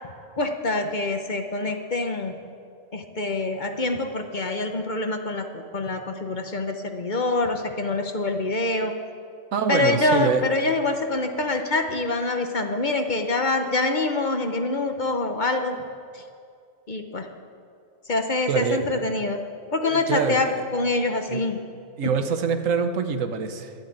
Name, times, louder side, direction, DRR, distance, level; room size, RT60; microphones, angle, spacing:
voice 1, 0.4-2.3 2.9-8.9 9.7-15.8 16.1-16.2 16.9-17.3 18.1-19.4 19.7-21.6, left 2 dB, 40° left, 5 dB, 1.0 m, -25 dB
voice 2, 9.5-10.4 18.5-18.8 19.8-20.4 21.3-21.4 22.0-23.7, right 6 dB, 80° right, 8 dB, 1.3 m, -25 dB
12.0 x 11.5 x 8.6 m, 2.3 s
omnidirectional pair, 1.3 m